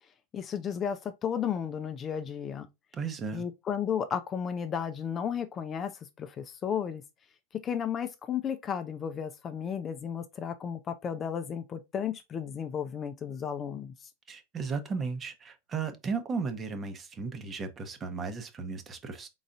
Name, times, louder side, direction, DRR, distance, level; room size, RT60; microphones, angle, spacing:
voice 1, 0.3-2.7 3.3-5.9 6.2-7.0 7.6-13.9, left 8 dB, 30° left, 0.5 m, -33 dB
voice 2, 2.9-3.4 14.3-19.3, right 5 dB, 25° right, 0.9 m, -35 dB
4.0 x 3.9 x 2.5 m
hypercardioid pair, 100°, 0 cm